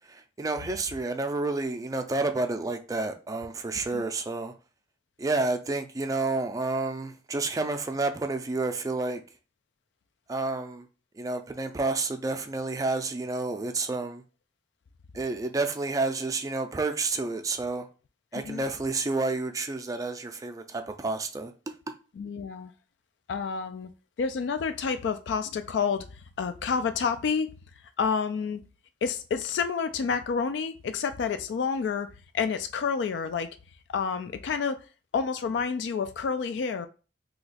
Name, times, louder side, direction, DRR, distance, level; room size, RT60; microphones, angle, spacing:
voice 1, 0.1-4.5 5.2-9.2 10.3-10.9 11.2-14.2 15.1-17.9 18.3-21.5, right 3 dB, 20° right, 0.4 m, -30 dB
voice 2, 18.3-18.7 22.2-22.7 23.3-23.9 24.2-26.1 26.4-27.5 28.0-28.6 29.0-32.1 32.3-33.5 33.9-34.8 35.1-36.9, left 5 dB, 80° left, 0.3 m, -29 dB
2.8 x 2.3 x 4.1 m
head